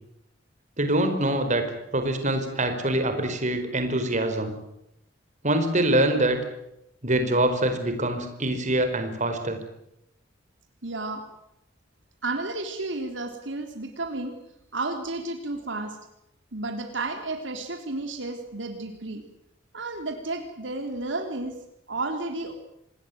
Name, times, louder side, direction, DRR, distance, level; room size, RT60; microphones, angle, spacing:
voice 1, 0.8-1.7 1.9-4.5 5.4-6.4 7.0-9.6, right 1 dB, 40° right, 7 dB, 4.9 m, -24 dB
voice 2, 10.8-11.2 12.2-14.4 14.7-16.0 16.5-19.2 19.7-21.5 21.9-22.5, right 2 dB, 70° right, 5 dB, 3.6 m, -32 dB
27.0 x 20.5 x 9.5 m, 0.80 s
head